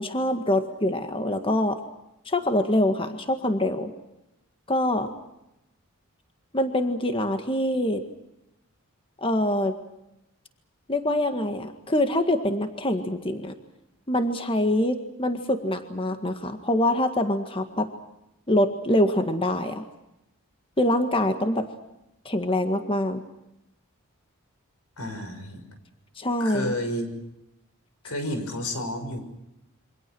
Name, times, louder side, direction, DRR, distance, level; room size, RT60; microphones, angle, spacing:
voice 1, 0.0-1.8 2.3-3.9 4.7-5.1 6.5-8.0 9.2-9.7 10.9-13.5 14.1-17.9 18.5-19.9 20.8-21.7 22.3-23.2 26.2-26.8, left 1 dB, 25° left, 7 dB, 1.8 m, -24 dB
voice 2, 25.0-25.6 26.4-27.1 28.0-29.2, left 1 dB, 90° left, 8 dB, 6.5 m, -31 dB
28.5 x 25.0 x 6.2 m, 0.89 s
head